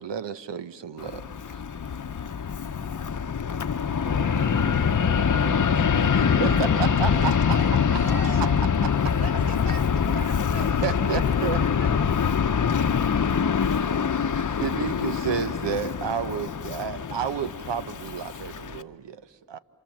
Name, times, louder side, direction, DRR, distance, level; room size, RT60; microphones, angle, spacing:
voice 1, 0.0-1.6 6.4-7.6 10.8-11.6 13.5-14.0 14.3-19.6, right 7 dB, 80° right, 12 dB, 0.9 m, -31 dB
Fixed-wing aircraft airplane, 1.0-18.8, left 7 dB, 45° left, 0.8 m, -24 dB
voice 2, 2.7-3.2, left 2 dB, 5° right, 1 dB, 1.2 m, -49 dB
Electric guitar, 4.0-11.8, right 2 dB, 25° right, 2.0 m, -42 dB
voice 3, 5.7-8.7 9.2-12.7, right 3 dB, 55° right, 0 dB, 3.3 m, -41 dB
30.0 x 26.0 x 7.3 m, 2.2 s
cardioid pair, 40°, 42 cm